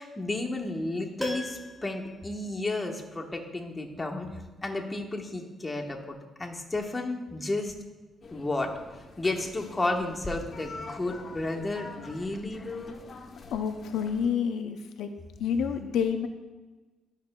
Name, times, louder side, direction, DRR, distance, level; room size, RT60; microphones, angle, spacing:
voice 1, 0.0-7.7 8.3-8.7 9.2-12.9, left 2 dB, 20° left, 1 dB, 1.1 m, -32 dB
Piano, 1.2-3.3 3.6-3.7, equal, 15° right, 1.5 m, -40 dB
sound 1, 8.2-14.3, left 3 dB, 45° left, 0.7 m, -46 dB
voice 2, 13.5-15.1 15.4-16.3, left 7 dB, 80° left, 7 dB, 0.4 m, -28 dB
12.0 x 5.6 x 2.2 m, 1.2 s
cardioid pair, 90°, 0 cm